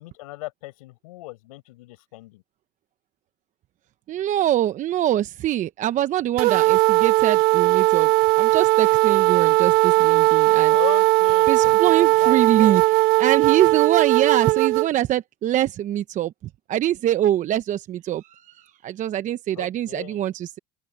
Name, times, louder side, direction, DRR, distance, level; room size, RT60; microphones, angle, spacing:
voice 1, 0.0-2.4 10.7-12.8 19.6-20.3, left 20 dB, 80° left, 6.9 m, -37 dB
voice 2, 4.1-8.1 8.4-10.8 11.5-16.3 16.7-20.6, right 12 dB, 45° right, 1.0 m, -24 dB
sound 1, 6.4-14.9, right 21 dB, 60° right, 1.3 m, -18 dB
open air
hypercardioid pair, 90°, 18 cm